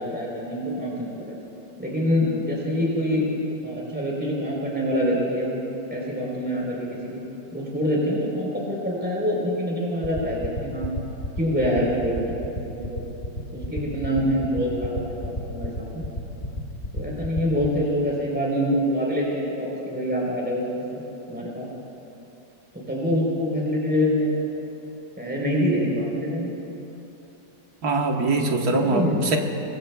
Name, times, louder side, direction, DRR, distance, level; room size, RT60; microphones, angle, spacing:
voice 1, 0.0-1.3 1.8-3.3 3.6-5.6 5.9-7.2 7.5-10.9 11.4-12.3 12.6-13.0 13.7-16.0 16.9-21.0 21.3-21.7 22.7-24.4 25.2-26.5 28.6-29.2, equal, 5° right, -4 dB, 3.7 m, -25 dB
sound 1, 10.0-17.7, equal, 30° left, 1.1 m, -30 dB
voice 2, 27.8-29.4, right 2 dB, 55° right, 2 dB, 1.7 m, -22 dB
24.0 x 23.0 x 2.3 m, 2.9 s
omnidirectional pair, 2.0 m